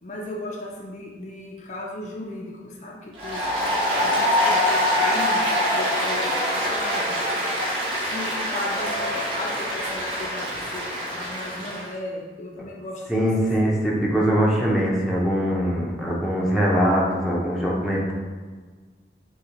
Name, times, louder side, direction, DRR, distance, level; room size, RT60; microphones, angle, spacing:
voice 1, 0.0-3.5 4.0-7.2 8.1-13.3, left 2 dB, 40° left, -1 dB, 0.5 m, -36 dB
Applause, 3.1-11.9, left 1 dB, 25° right, 1.4 m, -24 dB
voice 2, 13.1-18.1, equal, ahead, -4 dB, 0.7 m, -22 dB
6.3 x 2.3 x 2.9 m, 1.4 s
head